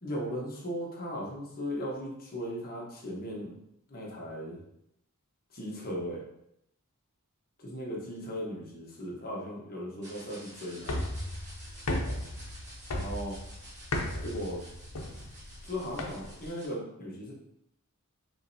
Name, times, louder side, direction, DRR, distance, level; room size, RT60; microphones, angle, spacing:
voice 1, 0.0-3.6 3.9-4.6 5.5-6.2 7.6-11.1 12.9-13.4 14.2-14.7 15.6-17.3, equal, 40° left, -4 dB, 1.2 m, -37 dB
sound 1, 10.0-16.7, right 1 dB, 35° right, 1.5 m, -51 dB
sound 2, 10.8-16.5, left 1 dB, 80° left, 0.7 m, -36 dB
4.9 x 3.2 x 2.7 m, 0.79 s
head